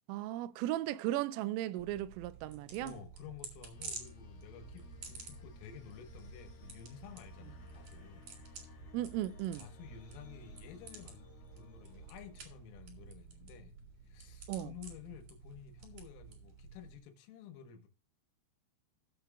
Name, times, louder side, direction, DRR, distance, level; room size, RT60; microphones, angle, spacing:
voice 1, 0.1-2.9 8.9-9.7 14.5-14.7, right 14 dB, 85° right, 3.2 m, -36 dB
sound 1, 1.8-17.0, right 5 dB, 50° right, 3.0 m, -51 dB
voice 2, 2.8-8.3 9.5-13.7 14.1-17.9, left 8 dB, 85° left, 3.8 m, -52 dB
sound 2, 3.7-13.2, left 7 dB, 65° left, 1.5 m, -58 dB
16.5 x 7.0 x 2.3 m
omnidirectional pair, 5.8 m